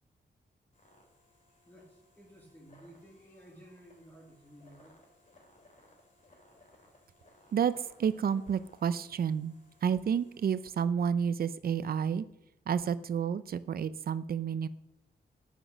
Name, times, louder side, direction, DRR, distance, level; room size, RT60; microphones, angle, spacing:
sound 1, 0.7-10.9, left 1 dB, 45° left, 3.1 m, -63 dB
voice 1, 1.6-5.0, equal, 10° left, 0 dB, 1.8 m, -55 dB
voice 2, 7.5-9.5 9.8-12.3 12.7-14.7, right 7 dB, 55° right, 15 dB, 0.6 m, -30 dB
10.0 x 9.1 x 6.2 m, 0.82 s
wide cardioid pair, 175°, 18 cm